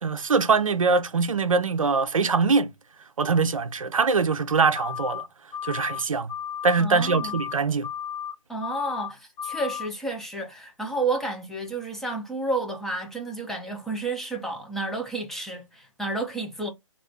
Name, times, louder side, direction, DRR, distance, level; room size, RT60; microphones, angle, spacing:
voice 1, 0.0-2.7 3.2-5.2 5.6-6.3 6.6-7.9, right 4 dB, 85° right, 0.6 m, -23 dB
sound 1, 4.8-5.2 5.5-6.0 6.3-6.8 7.1-7.5 7.8-8.3 8.6-9.1 9.4-9.9, left 9 dB, 25° left, 0.9 m, -34 dB
voice 2, 6.8-7.4 8.5-16.7, right 2 dB, ahead, 0.4 m, -31 dB
2.9 x 2.5 x 3.3 m
figure-of-eight pair, 140°, 17 cm